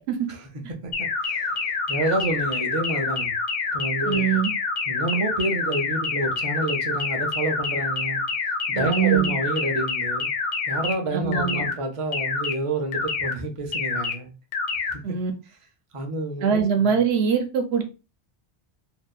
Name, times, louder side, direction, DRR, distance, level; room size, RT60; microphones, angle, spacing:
voice 1, 0.3-3.3 3.7-4.4 4.9-8.2 8.7-10.3 10.7-14.3 14.9-15.0 15.9-17.0, right 2 dB, 40° right, 0.5 m, -29 dB
sound 1, 0.9-10.9 11.3-11.7 12.1-12.5 12.9-13.3 13.7-14.1 14.5-14.9, left 4 dB, 55° left, 0.6 m, -27 dB
voice 2, 4.1-4.5 8.7-9.3 11.1-11.6 15.0-15.3 16.4-17.8, right 7 dB, 90° right, 0.9 m, -22 dB
2.7 x 2.3 x 2.2 m
omnidirectional pair, 1.1 m